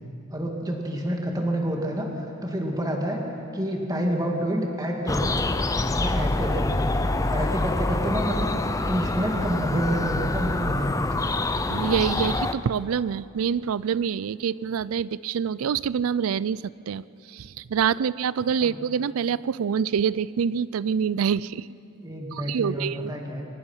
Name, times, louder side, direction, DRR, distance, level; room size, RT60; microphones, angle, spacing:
voice 1, 0.3-3.2 3.5-5.4 5.8-7.0 7.3-8.5 8.9-11.4 18.6-18.7 22.0-23.4, equal, 20° right, 1 dB, 2.3 m, -28 dB
sound 1, 5.1-12.5, left 2 dB, 15° left, 0.6 m, -26 dB
voice 2, 11.7-21.7 22.3-23.1, right 7 dB, 85° right, 20 dB, 0.4 m, -26 dB
23.5 x 19.5 x 5.7 m, 2.7 s
head